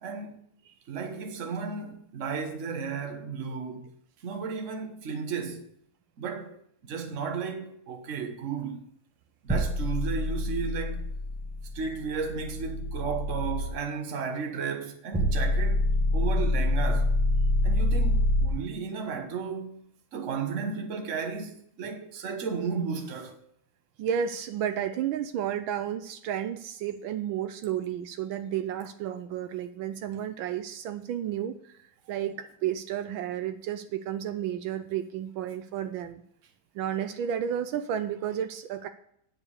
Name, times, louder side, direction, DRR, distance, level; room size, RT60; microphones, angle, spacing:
voice 1, 0.0-0.4 0.9-3.9 4.2-5.7 6.2-6.6 6.8-8.8 9.4-11.0 11.7-17.1 17.6-19.8 20.1-23.4, right 5 dB, 45° right, 1.3 m, -34 dB
sound 1, 9.5-13.7 15.1-18.5, left 1 dB, 5° right, 1.1 m, -26 dB
voice 2, 24.0-31.7 32.1-36.2 36.7-38.9, right 9 dB, 80° right, 1.4 m, -32 dB
9.4 x 5.3 x 6.6 m
omnidirectional pair, 2.2 m